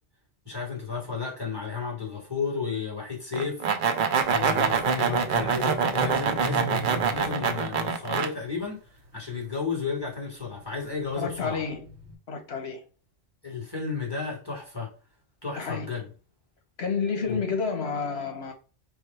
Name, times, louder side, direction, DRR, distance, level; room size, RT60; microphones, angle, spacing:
voice 1, 0.5-3.6 4.3-8.8 9.1-11.6 13.4-14.9 15.4-16.0 17.3-17.4, left 5 dB, 20° left, 1.7 m, -32 dB
sound 1, 3.3-8.3, right 6 dB, 60° right, 0.6 m, -25 dB
sound 2, 4.2-9.8 10.3-12.1, right 3 dB, 90° right, 1.1 m, -39 dB
voice 2, 11.2-11.9 12.3-12.8 15.6-15.9 16.8-18.5, left 5 dB, 70° left, 1.3 m, -30 dB
4.6 x 2.1 x 4.3 m
omnidirectional pair, 1.1 m